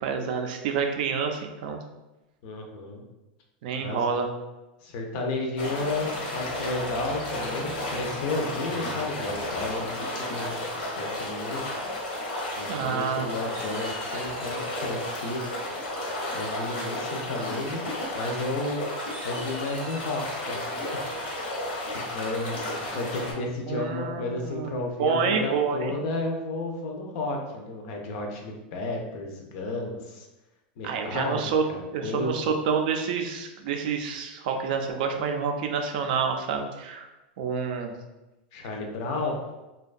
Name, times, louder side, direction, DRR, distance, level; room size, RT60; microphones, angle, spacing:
voice 1, 0.0-1.8 3.6-4.3 12.7-13.3 23.6-24.7 25.0-25.9 30.8-31.6 31.9-37.1 37.4-37.9, right 6 dB, 60° right, 4 dB, 0.4 m, -28 dB
voice 2, 2.4-3.0 3.8-4.0 4.8-11.8 12.6-15.4 16.3-17.8 18.1-18.8 19.2-20.7 21.9-30.3 30.8-32.4 38.5-39.4, left 2 dB, 50° left, 1 dB, 0.5 m, -32 dB
sound 1, 5.6-23.3, left 1 dB, 80° left, 0.9 m, -33 dB
sound 2, 12.5-13.1 13.5-14.9 16.3-16.7 17.1-17.4 17.6-17.8 18.2-18.3 18.9-20.5, equal, 20° right, 0.7 m, -46 dB
2.6 x 2.2 x 2.4 m, 1.0 s
supercardioid pair, 155°, 5 cm